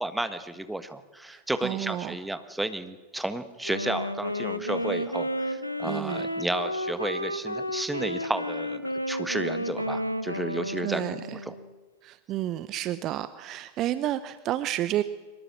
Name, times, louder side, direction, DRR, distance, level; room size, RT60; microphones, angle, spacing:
voice 1, 0.0-8.8 9.1-11.5, right 1 dB, 5° right, 10 dB, 1.5 m, -32 dB
voice 2, 1.3-2.2 5.8-6.2 10.8-11.4 12.0-15.0, right 13 dB, 35° right, 14 dB, 0.7 m, -31 dB
Wind instrument woodwind instrument, 3.6-11.7, equal, 90° left, 1.3 m, -32 dB
23.0 x 19.5 x 7.2 m, 1.3 s
figure-of-eight pair, 90°, 0 cm